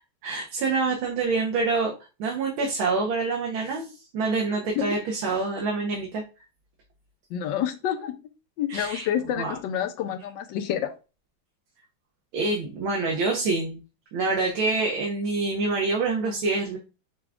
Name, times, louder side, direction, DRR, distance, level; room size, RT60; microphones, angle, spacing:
voice 1, 0.0-1.9 2.2-6.2 8.7-9.1 9.4-9.6 12.3-13.8 14.1-16.8, right 3 dB, 75° right, 0 dB, 1.6 m, -26 dB
voice 2, 7.3-8.1 8.6-10.9, left 10 dB, 75° left, 8 dB, 1.1 m, -28 dB
5.9 x 2.3 x 3.5 m, 0.31 s
omnidirectional pair, 2.3 m